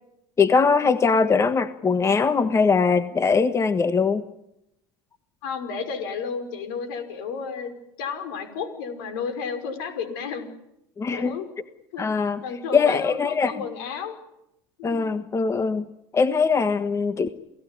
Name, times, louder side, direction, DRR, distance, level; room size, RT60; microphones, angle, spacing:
voice 1, 0.4-4.2 11.0-11.3 12.0-12.4 12.7-13.5 14.8-17.3, left 5 dB, 25° left, 11 dB, 1.4 m, -21 dB
voice 2, 5.4-10.5 11.1-11.5 11.9-12.1 12.4-14.1 14.8-15.0, left 5 dB, 75° left, 9 dB, 5.5 m, -32 dB
29.0 x 17.5 x 10.0 m, 0.84 s
hypercardioid pair, 90°, 12 cm